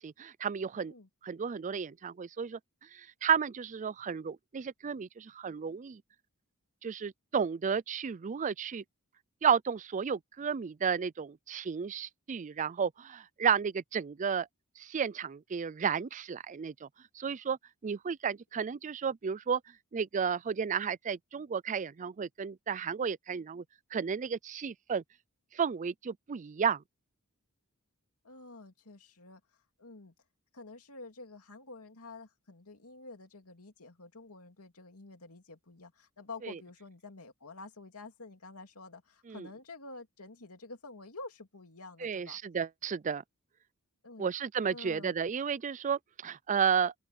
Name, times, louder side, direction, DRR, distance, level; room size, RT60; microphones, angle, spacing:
voice 1, 0.0-0.9 1.2-2.6 2.9-6.0 6.8-8.8 9.4-14.5 14.8-16.9 17.1-17.6 17.8-19.6 19.9-23.6 23.9-25.0 25.5-26.8 36.4-36.6 39.3-39.5 42.0-43.2 44.2-46.9, right 7 dB, 35° right, 0.4 m, -32 dB
voice 2, 28.2-29.4 29.8-30.1 30.5-42.4 44.0-44.3 44.7-45.1, left 3 dB, 75° left, 2.7 m, -49 dB
open air
head